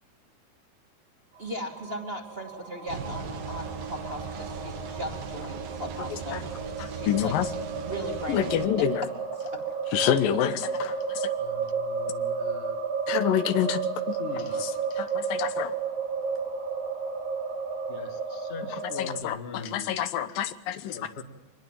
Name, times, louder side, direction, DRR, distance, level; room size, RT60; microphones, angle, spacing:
voice 1, 1.4-8.5 9.4-9.5, equal, 20° right, 2 dB, 2.4 m, -38 dB
sound 1, 1.4-19.2, right 5 dB, 60° right, 5.3 m, -33 dB
sound 2, 2.9-8.7, right 5 dB, 85° right, 3.5 m, -38 dB
voice 2, 6.1-6.4 6.8-7.5 8.3-9.0 9.9-11.3 13.1-14.2 14.5-15.8 18.6-21.1, left 10 dB, 90° left, 11 dB, 2.8 m, -28 dB
voice 3, 11.4-12.8 14.2-14.7 17.9-19.9 20.9-21.2, left 4 dB, 25° left, 6 dB, 1.4 m, -41 dB
25.0 x 20.5 x 7.7 m, 1.1 s
omnidirectional pair, 3.9 m